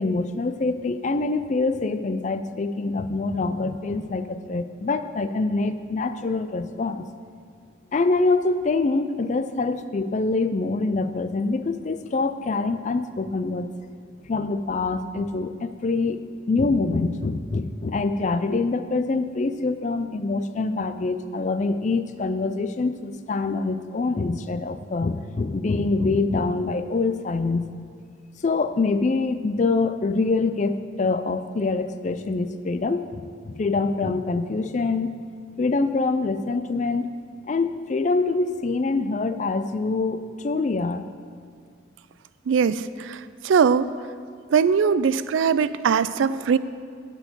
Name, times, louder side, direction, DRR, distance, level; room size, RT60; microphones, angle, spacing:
voice 1, 0.0-7.1 7.9-13.7 14.2-27.7 28.4-35.1 35.6-37.1 37.5-41.0, left 3 dB, 35° left, 10 dB, 0.4 m, -25 dB
voice 2, 42.5-43.2 43.4-43.9 44.5-46.6, right 6 dB, 75° right, 15 dB, 0.3 m, -20 dB
10.5 x 4.6 x 7.9 m, 2.2 s
head